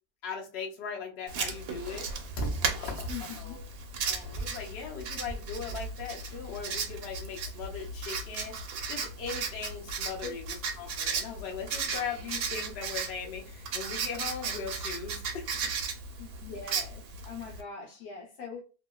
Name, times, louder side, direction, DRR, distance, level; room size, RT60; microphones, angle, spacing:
voice 1, 0.2-2.1 2.3-3.6 4.0-15.5, left 4 dB, 55° left, 0.8 m, -38 dB
Writing, 1.3-17.6, right 5 dB, 70° right, 1.0 m, -36 dB
voice 2, 3.1-3.6 10.2-10.4 16.2-18.6, left 5 dB, 70° left, 1.2 m, -42 dB
2.9 x 2.3 x 2.2 m
omnidirectional pair, 1.8 m